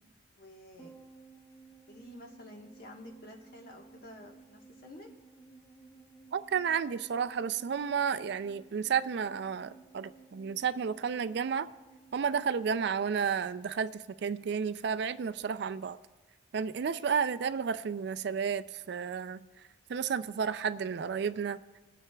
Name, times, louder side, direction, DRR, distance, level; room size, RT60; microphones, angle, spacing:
voice 1, 0.4-1.0 1.9-5.1, left 1 dB, 50° left, 1.3 m, -50 dB
sound 1, 0.8-13.3 13.6-13.7, right 4 dB, 15° left, 0.8 m, -57 dB
voice 2, 6.3-11.7 12.1-16.0 16.5-19.4 19.9-21.6, right 6 dB, 55° right, 0.3 m, -32 dB
23.0 x 8.7 x 2.3 m
head